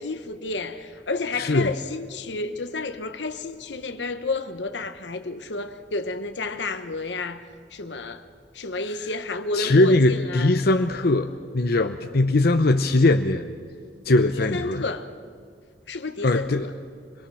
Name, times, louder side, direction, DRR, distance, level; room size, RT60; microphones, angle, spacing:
voice 1, 0.0-7.4 7.7-8.2 8.5-10.5 14.3-15.1 15.9-16.7, left 3 dB, 90° left, 1.2 m, -31 dB
voice 2, 1.4-1.7 9.5-13.4 14.1-14.8 16.2-16.7, left 2 dB, 60° left, 0.8 m, -20 dB
26.0 x 22.0 x 6.4 m
head